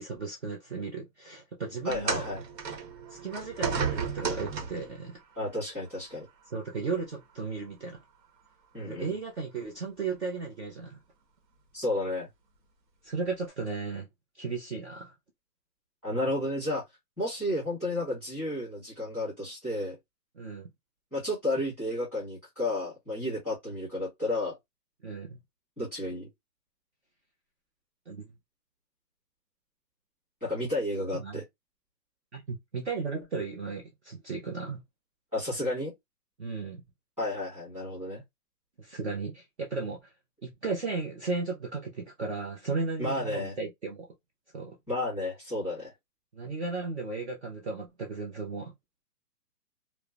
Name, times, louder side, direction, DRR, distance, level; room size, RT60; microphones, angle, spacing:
voice 1, 0.0-2.3 3.1-5.2 6.5-8.0 8.8-11.0 13.0-14.1 14.3-15.1 20.4-20.7 25.0-25.4 28.1-28.3 31.1-31.4 32.3-34.8 36.4-36.8 38.8-40.1 40.4-44.1 44.5-44.8 46.3-48.7, right 4 dB, 45° right, 0.6 m, -35 dB
voice 2, 1.8-2.4 5.3-6.3 8.7-9.1 11.7-12.3 16.0-16.8 17.2-19.9 21.1-24.5 25.8-26.3 30.4-31.4 35.3-35.9 37.2-38.2 43.0-43.6 44.9-45.9, left 1 dB, 5° right, 1.3 m, -32 dB
sound 1, 1.9-5.0 5.9-6.1 7.0-7.1, right 5 dB, 80° right, 1.0 m, -33 dB
3.0 x 2.0 x 2.3 m
hypercardioid pair, 170°, 49 cm